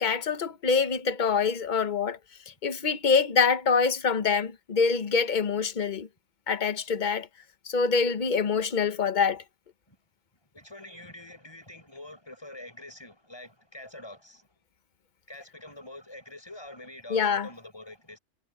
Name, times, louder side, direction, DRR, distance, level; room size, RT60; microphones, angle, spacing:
voice 1, 0.0-2.2 2.6-6.1 6.5-7.3 7.7-9.4 17.1-17.5, left 5 dB, 45° left, 1.1 m, -25 dB
voice 2, 10.5-14.5 15.3-18.2, left 1 dB, 20° left, 7.9 m, -45 dB
omnidirectional pair, 1.2 m